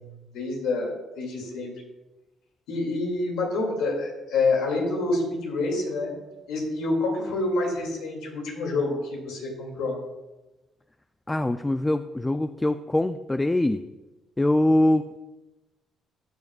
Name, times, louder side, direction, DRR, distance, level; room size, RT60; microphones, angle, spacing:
voice 1, 0.0-1.7 2.7-6.1 6.5-10.0, left 3 dB, 85° left, 0 dB, 2.4 m, -27 dB
voice 2, 11.3-13.8 14.4-15.0, left 1 dB, 15° left, 10 dB, 0.3 m, -23 dB
14.5 x 6.6 x 2.4 m, 1.1 s
supercardioid pair, 70°, 0 cm